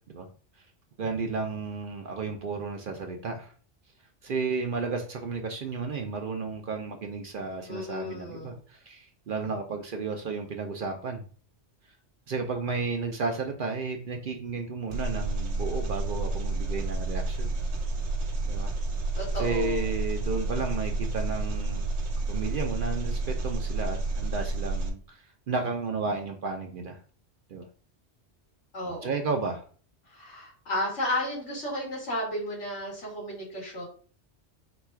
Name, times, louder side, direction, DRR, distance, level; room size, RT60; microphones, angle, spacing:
voice 1, 1.0-3.5 4.2-11.2 12.3-17.5 18.5-18.7 19.3-21.9 22.3-27.0 27.5-27.7 28.8-29.6, right 4 dB, 55° right, 4 dB, 0.7 m, -33 dB
voice 2, 7.7-8.6 19.1-19.9 28.7-29.1 30.1-33.8, left 1 dB, 75° left, -4 dB, 2.2 m, -33 dB
Engine, 14.9-24.9, right 2 dB, 75° right, 1.1 m, -30 dB
4.0 x 2.3 x 4.5 m, 0.42 s
omnidirectional pair, 1.2 m